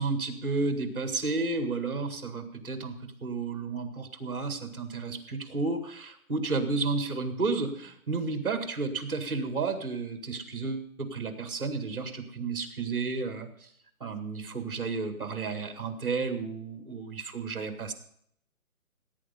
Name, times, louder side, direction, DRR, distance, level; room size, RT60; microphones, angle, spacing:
voice 1, 0.0-13.7 14.0-17.9, right 3 dB, 40° right, 7 dB, 1.9 m, -32 dB
16.5 x 8.6 x 5.4 m, 0.69 s
hypercardioid pair, 180°, 43 cm